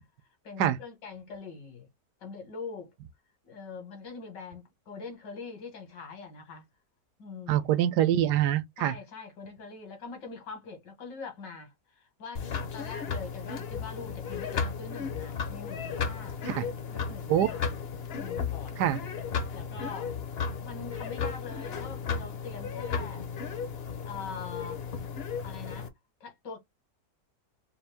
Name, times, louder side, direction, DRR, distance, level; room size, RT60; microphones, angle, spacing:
voice 1, 0.4-1.9 2.2-2.9 3.4-6.6 7.2-7.7 8.8-12.5 12.7-17.8 18.1-18.8 19.5-20.1 20.6-23.3 24.0-24.8 25.4-25.9 26.2-26.6, left 4 dB, 85° left, 2.3 m, -43 dB
voice 2, 7.5-8.9 16.5-16.6 17.3-17.5 18.8-19.0, right 11 dB, 80° right, 1.2 m, -24 dB
Lazy Boy Squick, 12.3-25.9, left 6 dB, 55° left, 0.7 m, -34 dB
4.2 x 2.5 x 3.4 m
omnidirectional pair, 1.8 m